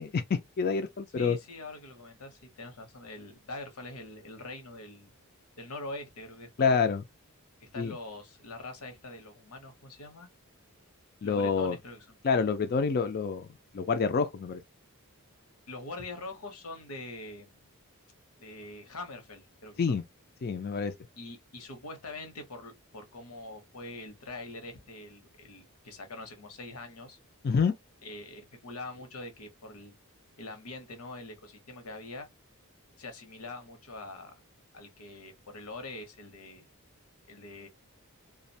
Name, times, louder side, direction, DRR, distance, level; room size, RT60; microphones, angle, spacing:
voice 1, 0.0-1.4 6.6-7.0 7.8-8.0 11.2-11.8 12.2-13.5 13.7-14.6 19.8-20.0 20.4-20.9 27.4-27.7, left 5 dB, 45° left, 0.4 m, -27 dB
voice 2, 1.2-5.1 5.6-6.9 7.6-10.3 11.2-12.1 15.7-17.7 18.4-20.0 21.2-27.2 28.0-29.9 30.4-32.3 33.0-34.3 34.7-36.7 37.3-37.7, left 2 dB, 85° left, 0.8 m, -44 dB
2.4 x 2.1 x 2.6 m
head